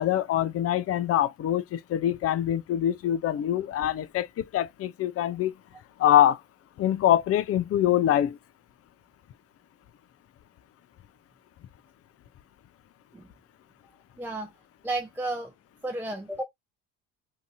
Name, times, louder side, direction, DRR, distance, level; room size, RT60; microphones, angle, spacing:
voice 1, 0.0-5.5 6.0-6.4 6.8-8.4, left 11 dB, 40° left, 0.5 m, -24 dB
voice 2, 14.2-14.5 14.8-15.5 15.8-16.4, right 2 dB, 5° right, 0.6 m, -32 dB
2.7 x 2.6 x 2.5 m
hypercardioid pair, 65°, 37 cm